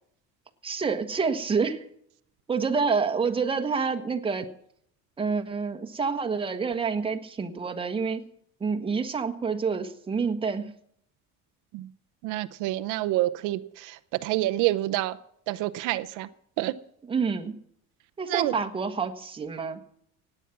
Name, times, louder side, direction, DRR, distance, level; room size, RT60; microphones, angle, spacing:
voice 1, 0.6-1.8 2.5-4.5 5.2-8.2 8.6-10.7 17.1-17.6 18.2-19.8, right 5 dB, 15° right, 1.3 m, -28 dB
voice 2, 12.2-15.2 15.5-16.3 16.6-16.7 18.3-18.5, right 16 dB, 85° right, 0.8 m, -27 dB
17.5 x 9.1 x 5.9 m
cardioid pair, 150°, 30 cm